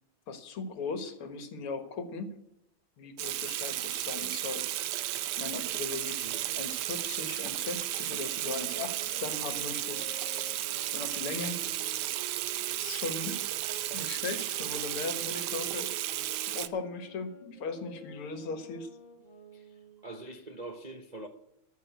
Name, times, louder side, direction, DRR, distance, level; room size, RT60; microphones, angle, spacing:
voice 1, 0.3-2.4 3.0-4.7 5.4-6.3 6.6-10.0 10.9-11.6 12.8-13.4 13.9-15.9 16.5-18.9, left 4 dB, 80° left, 2.4 m, -38 dB
Water tap faucet / Sink (filling or washing), 3.2-16.7, right 14 dB, 80° right, 1.5 m, -34 dB
voice 2, 6.2-6.6 19.5-21.3, right 2 dB, 50° right, 0.5 m, -44 dB
sound 1, 8.3-13.8 14.5-20.1, right 1 dB, 20° left, 3.3 m, -50 dB
14.0 x 6.6 x 9.1 m
omnidirectional pair, 2.4 m